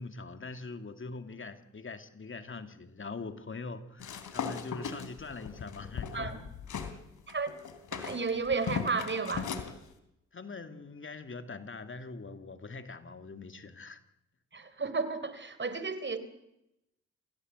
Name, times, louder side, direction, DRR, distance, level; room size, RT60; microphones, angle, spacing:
voice 1, 0.0-6.5 6.9-7.0 10.3-14.0, left 3 dB, 40° left, 8 dB, 2.5 m, -43 dB
sound 1, 4.0-6.9 7.3-9.7, left 7 dB, 70° left, 3.2 m, -38 dB
voice 2, 7.9-9.5 14.5-16.2, right 4 dB, 35° right, 12 dB, 3.8 m, -33 dB
27.5 x 17.0 x 8.1 m, 0.86 s
cardioid pair, 65°, 31 cm